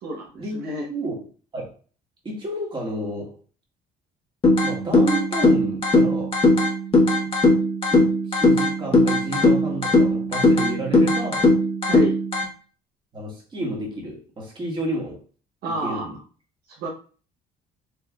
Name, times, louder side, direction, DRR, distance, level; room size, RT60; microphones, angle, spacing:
voice 1, 0.0-0.9 11.8-12.2 15.6-16.1 16.7-16.9, right 2 dB, 65° right, -1 dB, 0.9 m, -30 dB
voice 2, 2.2-3.4 4.6-6.4 7.9-11.5 13.1-15.2 15.8-16.2, right 1 dB, 30° right, -2 dB, 1.7 m, -31 dB
sound 1, 4.4-12.4, left 2 dB, 30° left, 1.3 m, -19 dB
4.4 x 3.3 x 2.3 m, 0.39 s
cardioid pair, 110°, 17 cm